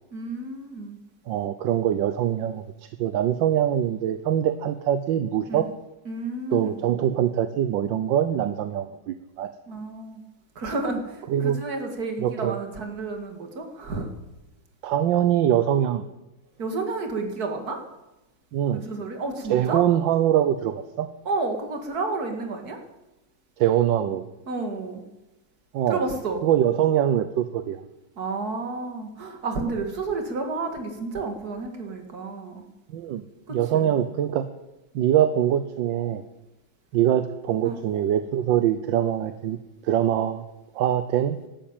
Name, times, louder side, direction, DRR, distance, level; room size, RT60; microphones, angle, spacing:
voice 1, 0.1-1.0 5.5-5.6 6.1-6.8 9.7-10.2 10.6-14.1 16.6-17.8 18.7-19.8 21.3-22.8 24.5-25.0 25.9-26.4 28.2-32.6 33.5-33.9 37.6-37.8, right 3 dB, 50° right, 4 dB, 2.5 m, -31 dB
voice 2, 1.3-2.6 3.0-5.7 6.5-9.5 11.3-11.6 12.2-12.6 14.8-16.0 18.5-18.8 19.5-21.1 23.6-24.2 25.7-26.0 26.4-27.8 32.9-33.2 33.5-34.5 34.9-36.2 36.9-39.6 39.8-40.4 40.7-41.4, right 10 dB, 75° right, 10 dB, 1.4 m, -23 dB
13.0 x 12.0 x 9.0 m, 1.0 s
omnidirectional pair, 2.2 m